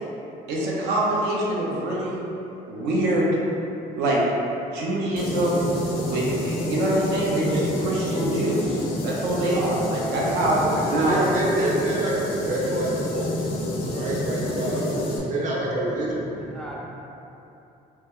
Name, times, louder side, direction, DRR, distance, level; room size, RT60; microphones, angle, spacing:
voice 1, 0.5-2.2 2.7-3.4 4.0-4.2 4.7-5.7 6.0-11.3 11.5-11.7, right 1 dB, 80° right, -4 dB, 0.6 m, -25 dB
sound 1, 5.2-15.2, left 1 dB, 85° left, 0.5 m, -28 dB
voice 2, 10.9-13.3 13.9-14.9 15.3-16.3, right 1 dB, 45° right, -4 dB, 0.7 m, -26 dB
voice 3, 13.7-14.4 14.7-15.3 16.3-16.8, right 1 dB, 5° left, -4 dB, 0.3 m, -37 dB
2.8 x 2.1 x 3.5 m, 2.9 s
cardioid pair, 110°, 17 cm